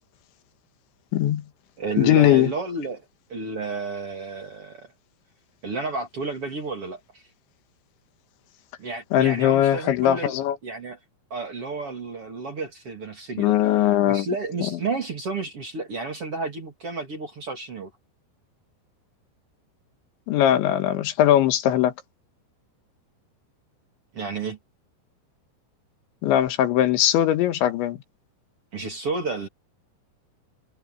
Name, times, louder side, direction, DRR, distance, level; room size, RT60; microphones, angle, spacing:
voice 1, 1.1-1.4 2.0-2.5 9.1-10.6 13.4-14.3 20.3-21.9 26.2-28.0, left 12 dB, 80° left, 3.7 m, -20 dB
voice 2, 1.8-3.0 3.3-4.9 5.6-7.0 8.8-10.3 10.6-11.0 11.3-17.9 24.1-24.6 28.7-29.5, right 3 dB, 35° right, 2.9 m, -31 dB
omnidirectional pair, 5.3 m